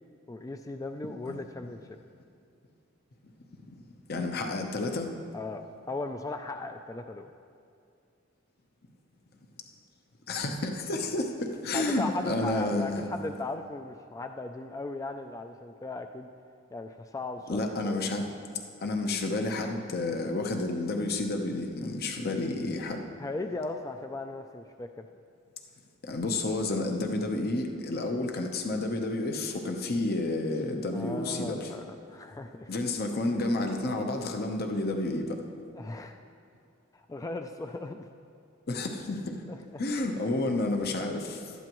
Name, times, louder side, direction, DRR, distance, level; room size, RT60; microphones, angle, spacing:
voice 1, 0.3-2.0 5.3-7.3 11.7-16.3 16.7-18.1 23.2-25.1 30.9-32.7 35.7-36.2 36.9-38.1 39.2-39.8, left 2 dB, 15° left, 6 dB, 0.3 m, -37 dB
voice 2, 4.1-5.2 10.3-13.1 17.5-18.2 18.8-23.0 26.0-31.7 32.7-35.4 38.7-39.4 39.8-41.5, left 2 dB, 50° left, 4 dB, 0.9 m, -30 dB
17.5 x 12.5 x 3.1 m, 2.4 s
head